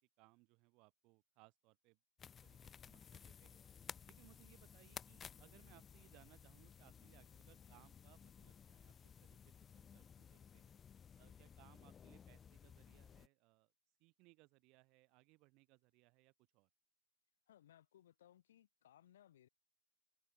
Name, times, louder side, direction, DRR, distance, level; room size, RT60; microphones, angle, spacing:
voice 1, 0.2-2.0 2.4-3.6 4.1-8.9 9.2-10.7 11.1-13.7 14.0-16.7, right 25 dB, 30° right, 1.2 m, -69 dB
sound 1, 2.2-13.3, left 7 dB, 10° left, 0.9 m, -57 dB
voice 2, 17.5-19.5, left 11 dB, 50° left, 2.5 m, -66 dB
hypercardioid pair, 150°, 0 cm